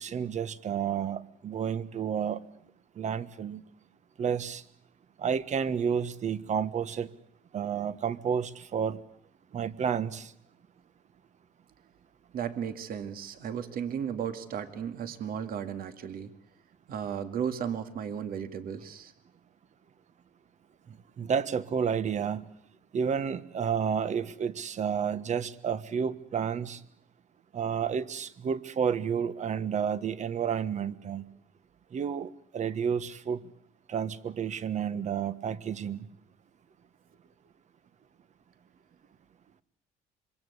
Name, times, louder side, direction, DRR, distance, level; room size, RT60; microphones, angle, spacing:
voice 1, 0.0-2.5 3.0-3.6 4.2-4.6 5.2-7.1 7.5-9.0 9.5-10.3 20.9-22.5 22.9-26.8 27.5-31.2 31.9-33.4 33.9-36.1, right 7 dB, 45° right, 14 dB, 1.4 m, -31 dB
voice 2, 12.3-16.3 16.9-19.1, right 8 dB, 60° right, 9 dB, 2.2 m, -35 dB
26.0 x 24.0 x 8.3 m, 0.69 s
cardioid pair, 110°, 17 cm